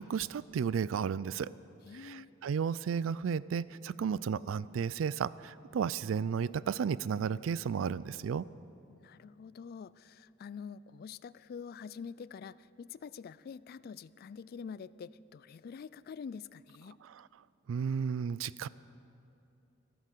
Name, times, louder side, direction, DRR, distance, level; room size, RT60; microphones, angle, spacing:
voice 1, 0.0-1.5 2.0-8.5 17.0-17.2 17.7-18.7, right 6 dB, 75° right, 19 dB, 0.3 m, -33 dB
voice 2, 1.8-2.3 8.9-17.0, left 6 dB, 50° left, 18 dB, 0.3 m, -46 dB
14.0 x 12.5 x 6.6 m, 2.8 s
head